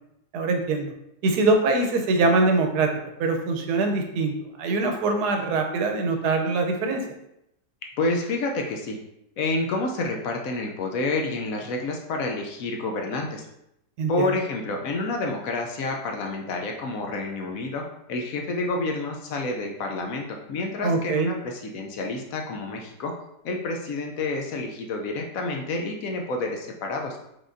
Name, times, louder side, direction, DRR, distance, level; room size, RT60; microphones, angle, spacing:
voice 1, 0.3-0.9 1.2-2.9 3.2-4.3 4.6-7.0 14.0-14.3 20.8-21.3, right 3 dB, 75° right, 4 dB, 1.2 m, -23 dB
voice 2, 8.0-9.0 9.4-13.5 14.1-17.8 18.1-23.1 23.4-27.2, left 2 dB, 70° left, 2 dB, 0.9 m, -29 dB
4.8 x 3.7 x 2.6 m, 0.82 s
omnidirectional pair, 1.8 m